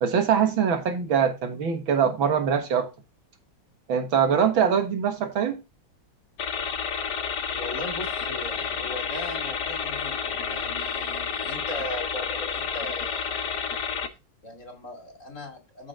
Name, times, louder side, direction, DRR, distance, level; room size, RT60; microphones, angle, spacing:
voice 1, 0.0-2.9 3.9-5.6, right 7 dB, 80° right, 2.2 m, -23 dB
sound 1, 6.4-14.1, left 6 dB, 60° left, 1.6 m, -30 dB
voice 2, 7.5-13.7 14.4-15.9, left 1 dB, 40° left, 3.0 m, -38 dB
14.0 x 5.1 x 3.8 m
omnidirectional pair, 2.1 m